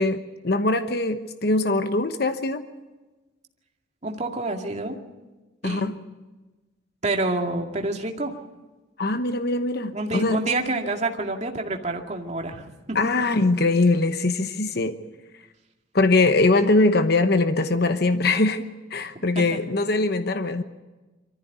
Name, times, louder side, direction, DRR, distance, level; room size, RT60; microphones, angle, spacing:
voice 1, 0.0-2.6 5.6-5.9 9.0-10.4 12.9-15.0 15.9-20.6, left 2 dB, 55° left, 9 dB, 1.0 m, -22 dB
voice 2, 4.0-5.0 5.6-5.9 7.0-8.3 9.9-13.0 19.3-19.6, right 2 dB, 35° right, 2 dB, 2.3 m, -28 dB
24.0 x 14.5 x 9.4 m, 1.2 s
head